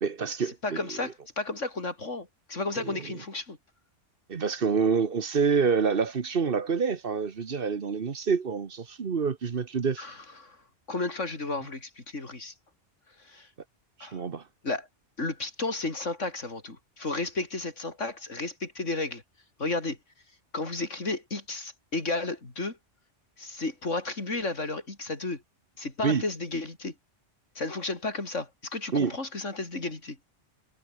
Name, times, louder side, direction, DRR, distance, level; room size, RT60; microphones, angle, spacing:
voice 1, 0.0-1.1 2.8-3.2 4.3-10.1 14.0-14.4 26.0-26.2 28.9-29.1, right 5 dB, 50° right, 1.3 m, -27 dB
voice 2, 0.6-3.6 10.0-10.6 10.9-12.5 13.2-13.5 14.0-14.2 14.6-14.9 15.2-19.2 19.6-20.0 20.5-22.8 23.4-25.4 25.8-26.9 27.6-30.2, left 3 dB, 90° left, 4.2 m, -33 dB
omnidirectional pair, 1.2 m